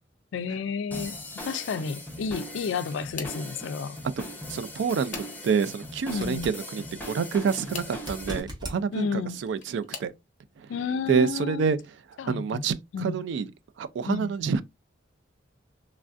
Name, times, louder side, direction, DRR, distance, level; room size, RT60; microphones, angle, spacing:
voice 1, 0.3-1.2 1.5-4.0 6.1-6.5 8.9-9.4 10.7-11.7 12.2-12.6 12.9-13.2 14.1-14.5, left 5 dB, 75° left, 0.3 m, -31 dB
sound 1, 0.9-8.4, left 1 dB, 10° left, 0.7 m, -39 dB
sound 2, 2.9-3.5 4.5-5.7 7.3-8.0 9.1-10.2 10.9-11.3 11.7-11.8 13.2-13.3, left 6 dB, 40° left, 0.7 m, -43 dB
voice 2, 4.5-9.1 9.4-10.1 11.1-11.8 12.3-13.5 13.8-14.6, right 6 dB, 70° right, 0.3 m, -27 dB
sound 3, 6.1-6.6 8.0-8.8 11.8-11.9, equal, 25° right, 0.9 m, -39 dB
3.2 x 2.5 x 2.3 m
head